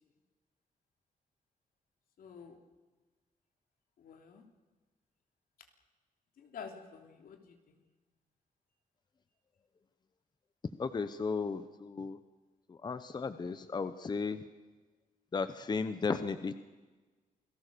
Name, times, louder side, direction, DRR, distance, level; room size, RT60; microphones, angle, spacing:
voice 1, 2.2-2.6 4.0-4.4 6.4-7.8, left 6 dB, 80° left, 5 dB, 3.2 m, -49 dB
voice 2, 10.8-12.2 12.7-14.4 15.3-16.5, left 4 dB, 30° left, 12 dB, 0.9 m, -35 dB
28.0 x 18.5 x 6.8 m, 1.3 s
wide cardioid pair, 145°, 15 cm